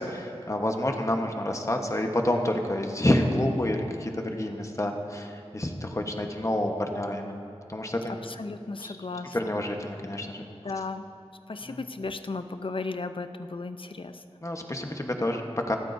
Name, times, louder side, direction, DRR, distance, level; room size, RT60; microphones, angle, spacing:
voice 1, 0.0-8.2 8.8-8.9 9.3-10.4 11.6-11.8 14.4-15.8, left 1 dB, 30° left, 3 dB, 1.2 m, -28 dB
voice 2, 8.1-9.6 10.6-11.1 11.5-14.2, left 3 dB, 55° left, 9 dB, 0.6 m, -35 dB
27.5 x 9.2 x 2.7 m, 2.6 s
wide cardioid pair, 50°, 11 cm